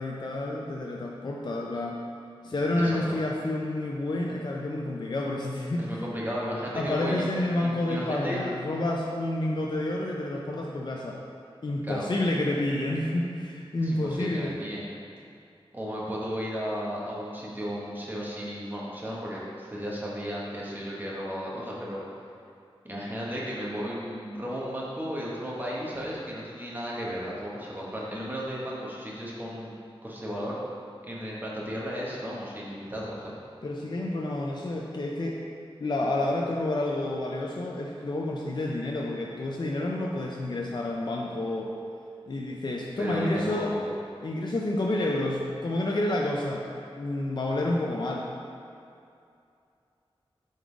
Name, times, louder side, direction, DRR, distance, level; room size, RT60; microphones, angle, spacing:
voice 1, 0.0-2.0 2.4-6.0 6.8-11.2 11.6-14.6 33.6-35.4 35.8-41.7 42.3-43.8 44.2-46.6 47.0-48.3, left 1 dB, 50° left, -2 dB, 0.5 m, -29 dB
voice 2, 2.4-3.2 5.8-8.4 11.8-12.0 13.8-14.8 15.7-22.0 22.8-29.7 30.0-30.6 31.0-33.3 43.0-43.9, equal, 20° right, -6 dB, 1.3 m, -34 dB
5.4 x 3.8 x 4.7 m, 2.5 s
wide cardioid pair, 70°, 10 cm